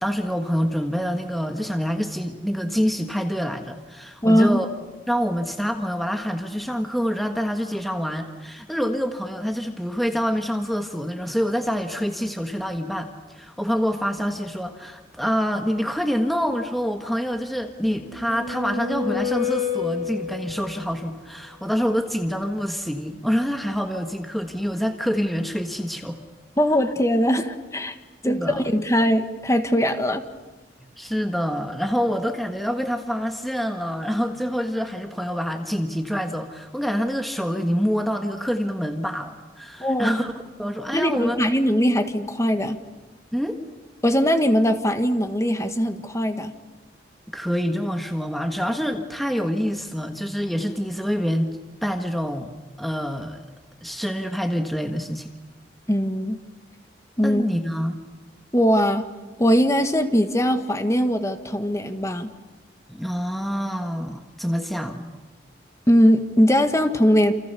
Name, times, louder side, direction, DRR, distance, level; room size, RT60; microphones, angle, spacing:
voice 1, 0.0-4.7 5.1-26.2 28.2-28.6 30.8-40.3 40.6-41.4 43.3-43.6 47.3-53.4 53.8-55.3 57.2-58.0 62.9-65.1, equal, ahead, 5 dB, 1.5 m, -26 dB
voice 2, 4.2-4.6 26.6-28.0 28.2-30.2 39.8-40.2 40.9-42.8 44.0-46.5 55.9-56.4 57.2-57.4 58.5-59.1 59.4-62.3 65.9-67.3, equal, 15° left, 8 dB, 1.7 m, -20 dB
sound 1, 17.8-20.8, left 6 dB, 50° left, 6.0 m, -29 dB
29.0 x 28.5 x 6.9 m, 1.2 s
head